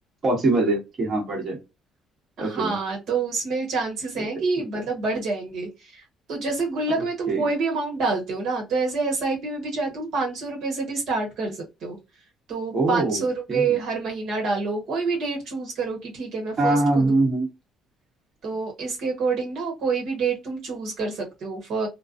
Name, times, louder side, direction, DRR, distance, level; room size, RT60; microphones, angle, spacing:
voice 1, 0.2-1.6 2.4-2.7 7.3-7.4 12.7-13.2 13.5-13.6 16.6-17.5, right 2 dB, 40° right, 1.3 m, -22 dB
voice 2, 2.4-12.0 12.5-17.1 18.4-21.9, right 4 dB, 70° right, 1.2 m, -27 dB
2.3 x 2.3 x 2.4 m
cardioid pair, 100°, 0 cm